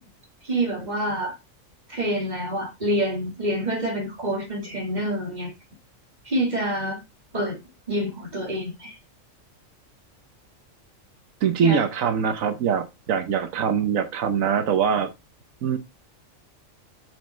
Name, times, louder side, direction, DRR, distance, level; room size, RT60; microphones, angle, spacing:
voice 1, 0.4-1.4 1.9-5.5 6.2-7.0 7.3-7.6 7.9-9.0 11.6-11.8, right 1 dB, 35° right, 2.5 m, -27 dB
voice 2, 11.4-15.1 15.6-15.8, right 7 dB, 85° right, 1.3 m, -23 dB
7.1 x 6.3 x 4.2 m
omnidirectional pair, 1.4 m